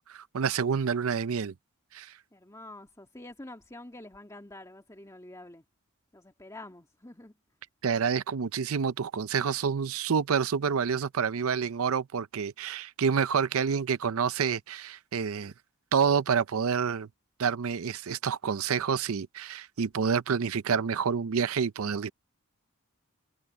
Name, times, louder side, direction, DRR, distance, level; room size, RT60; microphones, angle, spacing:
voice 1, 0.1-1.5 1.9-2.1 7.8-15.5 15.9-17.1 17.4-22.1, right 6 dB, 70° right, 0.5 m, -28 dB
voice 2, 2.3-5.6 6.1-7.3, left 1 dB, 15° left, 2.1 m, -47 dB
head